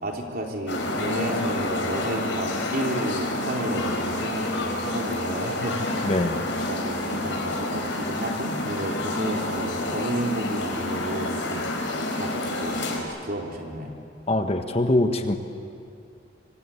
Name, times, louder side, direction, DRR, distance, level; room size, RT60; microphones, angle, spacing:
voice 1, 0.0-6.1 6.4-13.9, right 1 dB, 50° right, 0 dB, 3.9 m, -32 dB
sound 1, 0.7-13.0, left 2 dB, 85° left, 5.0 m, -29 dB
voice 2, 6.0-6.4 14.3-15.4, left 1 dB, 35° left, 6 dB, 1.5 m, -23 dB
26.5 x 24.5 x 8.7 m, 2.4 s
head